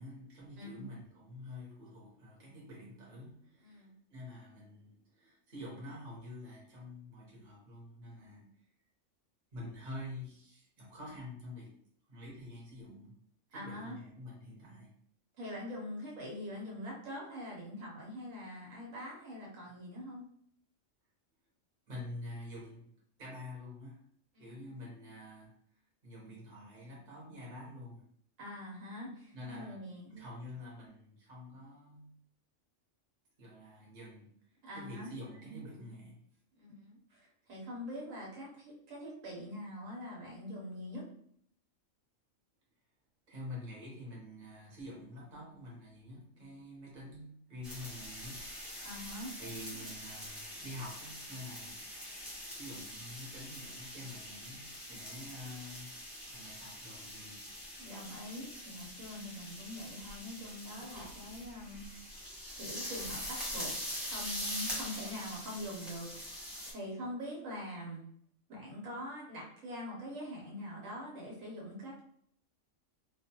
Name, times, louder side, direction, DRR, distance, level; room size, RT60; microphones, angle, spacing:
voice 1, 0.0-8.5 9.5-11.7 12.1-13.1 13.5-14.9 21.9-22.9 23.2-24.0 24.4-25.5 26.0-28.1 29.0-29.8 30.1-32.1 33.4-34.3 34.7-36.2 43.3-48.9 49.4-51.8 52.5-55.9 56.3-57.4, left 1 dB, 40° right, -5 dB, 1.1 m, -47 dB
voice 2, 3.6-3.9 8.2-8.5 13.5-14.0 15.4-20.2 24.3-24.7 28.4-30.1 34.6-35.1 36.6-41.0 48.8-49.3 54.9-55.3 57.8-61.9 62.5-63.7 64.0-66.3 66.7-68.1 68.5-72.0, equal, 80° right, -3 dB, 1.3 m, -44 dB
sound 1, 47.6-66.7, equal, ahead, 0.7 m, -44 dB
2.6 x 2.3 x 2.9 m, 0.64 s
omnidirectional pair, 1.4 m